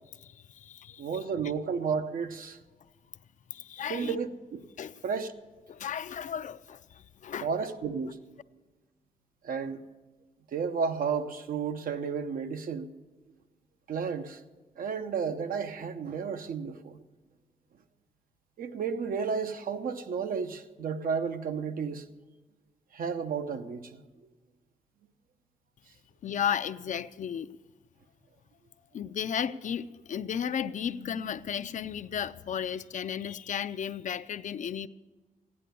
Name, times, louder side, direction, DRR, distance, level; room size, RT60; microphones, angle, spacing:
voice 1, 0.2-1.1 3.5-4.2 4.8-4.9 5.7-7.5 26.2-27.5 28.9-34.9, left 8 dB, 60° left, 0.4 m, -34 dB
voice 2, 1.0-2.6 3.9-4.6 5.0-5.3 7.4-8.2 9.4-9.8 10.5-12.9 13.9-14.4 14.8-17.0 18.6-22.1 22.9-24.0, right 6 dB, 90° right, 0.8 m, -32 dB
15.5 x 9.8 x 6.8 m
wide cardioid pair, 130°, 14 cm